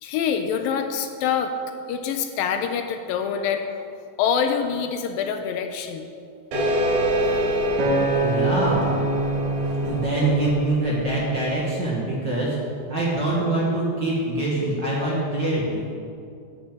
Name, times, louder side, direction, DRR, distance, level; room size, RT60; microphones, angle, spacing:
voice 1, 0.0-1.5 1.9-3.9 4.2-6.1 6.9-7.0, left 7 dB, 80° left, 6 dB, 2.3 m, -25 dB
sound 1, 6.5-11.6, equal, 65° right, 3.5 m, -26 dB
Acoustic guitar, 7.8-12.1 12.7-13.0, right 1 dB, 85° right, 3.7 m, -26 dB
voice 2, 8.2-8.9 9.8-12.6 12.9-15.9, right 2 dB, 40° right, -5 dB, 1.8 m, -24 dB
12.5 x 8.9 x 5.5 m, 2.4 s
omnidirectional pair, 4.3 m